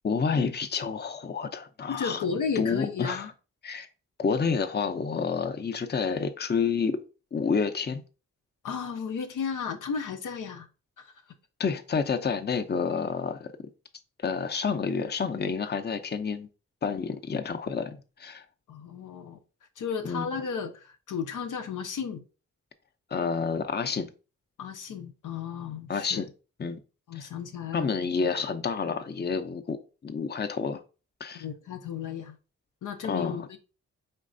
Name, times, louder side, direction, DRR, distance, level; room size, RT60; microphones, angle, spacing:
voice 1, 0.0-3.3 3.6-3.9 4.2-7.0 7.3-8.0 11.6-13.5 14.2-16.5 16.8-18.4 20.0-20.3 23.1-24.1 25.9-26.3 26.6-26.8 27.1-27.3 27.7-29.8 30.0-30.8 31.2-31.4 33.0-33.5, left 5 dB, 35° left, 0.6 m, -29 dB
voice 2, 1.9-3.3 8.6-10.7 11.0-11.1 18.7-19.4 19.8-22.2 24.6-26.2 27.1-27.9 31.3-32.4 32.8-33.6, left 6 dB, 80° left, 0.6 m, -34 dB
4.5 x 3.2 x 2.5 m
cardioid pair, 45°, 31 cm